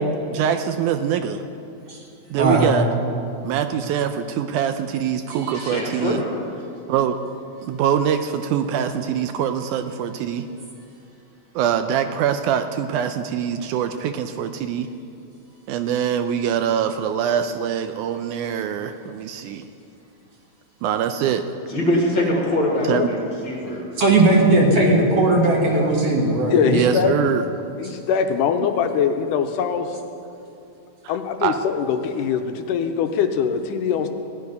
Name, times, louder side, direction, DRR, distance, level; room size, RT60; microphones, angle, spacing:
voice 1, 0.3-1.4 2.3-2.9 3.4-6.2 6.9-7.2 7.7-10.5 11.6-14.9 15.7-19.7 20.8-21.4 22.8-23.1 26.7-27.5 31.0-31.1 31.4-31.6, right 9 dB, 80° right, 8 dB, 1.9 m, -23 dB
voice 2, 2.4-2.7 5.6-5.7 24.0-26.7, right 2 dB, 50° right, -2 dB, 2.3 m, -17 dB
voice 3, 5.6-6.2 21.7-23.8, left 1 dB, 40° left, -2 dB, 2.4 m, -23 dB
voice 4, 26.5-27.3 27.8-29.9 31.1-34.1, left 7 dB, 85° left, 6 dB, 2.2 m, -22 dB
16.5 x 10.5 x 5.3 m, 2.6 s
omnidirectional pair, 3.7 m